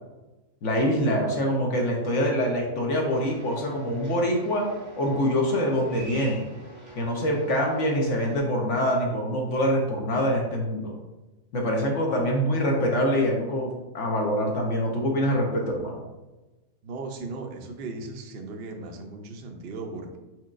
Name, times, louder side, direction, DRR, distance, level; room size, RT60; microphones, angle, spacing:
voice 1, 0.6-4.6 5.0-6.4 7.0-10.9 11.5-16.0, equal, 60° left, 0 dB, 1.0 m, -25 dB
sound 1, 3.1-8.4, right 1 dB, 15° right, 1.2 m, -46 dB
voice 2, 16.8-20.2, right 3 dB, 60° right, 3 dB, 0.6 m, -37 dB
4.5 x 4.1 x 2.5 m, 1.1 s
omnidirectional pair, 1.6 m